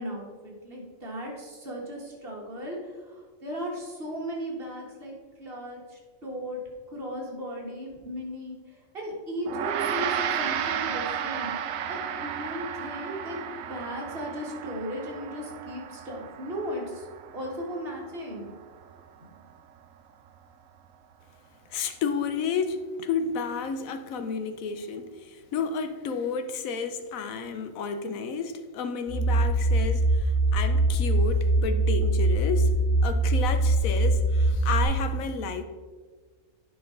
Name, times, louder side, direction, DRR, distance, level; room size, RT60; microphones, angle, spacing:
voice 1, 0.0-6.6 6.9-11.5 11.8-13.4 13.7-17.1 17.3-18.6 19.2-19.3, equal, 45° right, 1.8 m, -36 dB
Gong, 9.5-19.0, right 8 dB, 80° right, 1.0 m, -33 dB
voice 2, 21.7-32.7 33.0-35.6, left 5 dB, 90° left, 1.1 m, -31 dB
sound 1, 29.1-34.8, right 2 dB, 10° left, 2.8 m, -23 dB
9.9 x 5.5 x 3.8 m
omnidirectional pair, 1.4 m